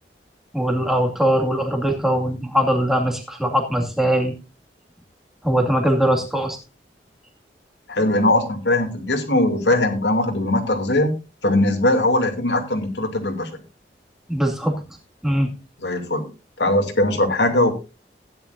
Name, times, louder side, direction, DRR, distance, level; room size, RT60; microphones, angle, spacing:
voice 1, 0.5-4.3 5.4-6.6 14.3-14.7 15.2-15.5, equal, ahead, 2 dB, 2.2 m, -21 dB
voice 2, 7.9-11.1 11.4-13.5 15.8-16.3 16.6-17.7, left 1 dB, 90° left, 4 dB, 2.8 m, -20 dB
16.0 x 10.5 x 2.7 m, 0.30 s
head